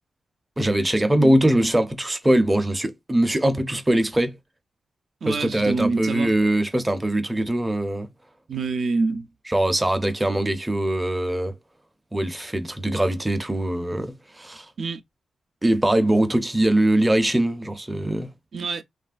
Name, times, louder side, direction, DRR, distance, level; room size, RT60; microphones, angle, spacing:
voice 1, 0.6-4.4 5.3-8.1 9.5-11.5 12.1-14.7 15.6-18.3, right 1 dB, 15° right, 0.5 m, -22 dB
voice 2, 5.2-6.3 8.5-9.3 14.8-15.0 18.5-18.8, right 4 dB, 65° right, 0.5 m, -26 dB
3.1 x 2.4 x 2.3 m
wide cardioid pair, 120°, 0 cm